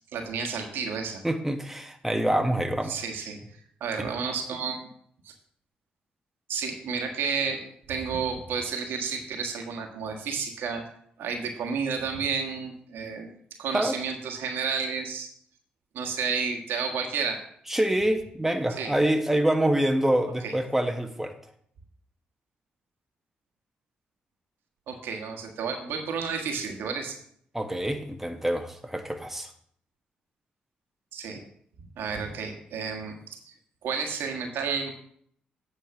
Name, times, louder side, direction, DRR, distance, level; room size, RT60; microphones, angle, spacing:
voice 1, 0.1-1.2 2.9-4.9 5.2-5.3 6.5-10.8 11.2-15.3 15.9-17.4 18.8-18.9 20.4-20.5 24.9-27.2 31.1-31.4 32.0-33.5 33.8-34.9, right 5 dB, 75° right, 4 dB, 1.5 m, -31 dB
voice 2, 1.2-3.0 4.0-4.1 13.7-14.0 17.7-21.4 27.5-29.5, right 1 dB, 5° right, 5 dB, 1.3 m, -26 dB
8.9 x 4.8 x 5.9 m, 0.65 s
supercardioid pair, 50°, 4 cm